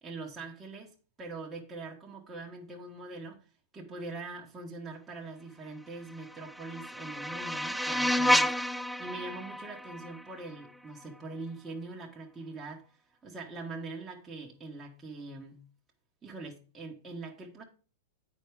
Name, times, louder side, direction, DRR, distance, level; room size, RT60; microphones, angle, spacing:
voice 1, 0.0-3.5 3.7-13.0 13.2-15.6 16.2-17.6, right 3 dB, 15° right, 1.5 m, -43 dB
sound 1, 6.0-11.1, left 1 dB, ahead, 0.3 m, -31 dB
8.9 x 4.9 x 4.8 m
hypercardioid pair, 115°, 0 cm